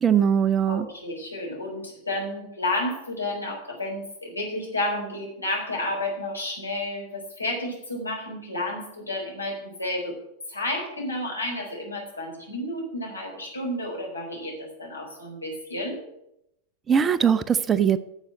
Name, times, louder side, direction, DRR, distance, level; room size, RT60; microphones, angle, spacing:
voice 1, 0.0-0.9 16.9-18.0, right 8 dB, 20° right, 14 dB, 0.6 m, -21 dB
voice 2, 0.7-10.1 10.5-16.0, left 1 dB, 80° left, -1 dB, 4.3 m, -31 dB
9.8 x 7.6 x 8.2 m, 0.81 s
figure-of-eight pair, 90°, 0 cm